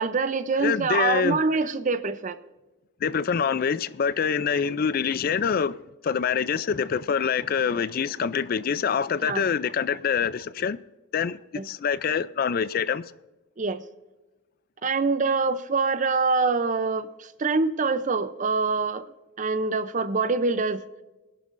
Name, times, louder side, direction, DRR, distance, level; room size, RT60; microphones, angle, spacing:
voice 1, 0.0-2.4 9.2-9.5 11.6-11.7 13.6-13.8 14.8-19.1 19.4-20.8, right 4 dB, 35° right, 0.5 m, -25 dB
voice 2, 0.6-1.4 3.0-5.8 6.0-10.8 11.1-13.1, left 6 dB, 45° left, 0.3 m, -25 dB
20.5 x 11.5 x 2.5 m
head